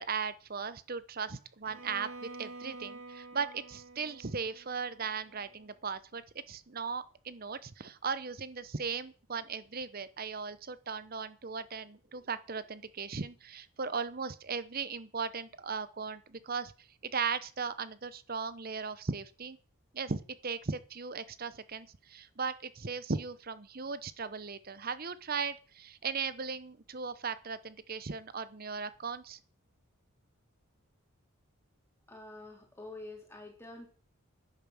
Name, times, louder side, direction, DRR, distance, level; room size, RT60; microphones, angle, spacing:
voice 1, 0.0-6.2 6.5-19.6 19.9-29.4, right 5 dB, 40° right, 14 dB, 0.8 m, -37 dB
Bowed string instrument, 1.6-5.6, right 2 dB, 70° right, 2.3 m, -49 dB
voice 2, 32.1-33.9, left 2 dB, 10° left, 0 dB, 3.3 m, -47 dB
10.5 x 9.0 x 6.2 m, 0.37 s
head